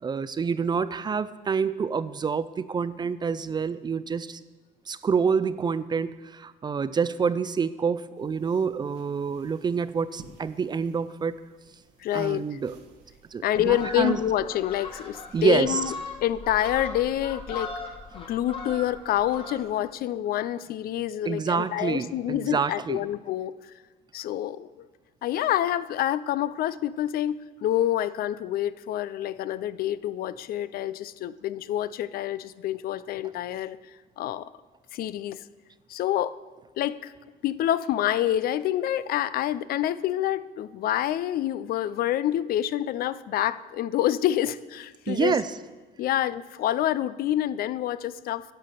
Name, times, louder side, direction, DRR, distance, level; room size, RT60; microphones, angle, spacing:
voice 1, 0.0-4.4 4.9-11.4 12.1-12.8 13.3-14.2 15.3-15.8 21.2-23.1 45.1-45.5, right 6 dB, 25° right, 15 dB, 0.4 m, -27 dB
sound 1, 8.1-13.9, right 5 dB, 85° right, 1.3 m, -55 dB
voice 2, 12.0-12.4 13.4-15.9 16.2-17.7 18.1-23.5 24.1-24.9 25.2-33.8 34.2-34.5 34.9-35.4 35.9-36.4 36.8-37.1 37.4-45.4 46.0-48.4, left 12 dB, 60° left, 16 dB, 0.4 m, -27 dB
Fowl, 13.6-19.9 20.2-20.5, left 3 dB, 30° left, 1.7 m, -39 dB
10.5 x 5.8 x 6.6 m, 1.3 s
cardioid pair, 110°, 17 cm